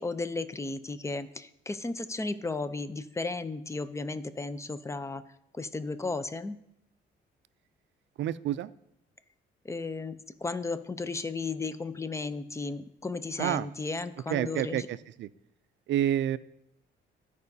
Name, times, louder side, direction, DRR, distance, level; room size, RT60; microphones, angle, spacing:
voice 1, 0.0-5.2 5.5-6.6 9.6-14.9, left 3 dB, 15° left, 12 dB, 0.5 m, -34 dB
voice 2, 8.2-8.7 13.4-13.7 14.3-15.3 15.9-16.4, right 11 dB, 65° right, 16 dB, 0.4 m, -29 dB
14.0 x 4.8 x 2.7 m, 0.80 s
cardioid pair, 90°, 20 cm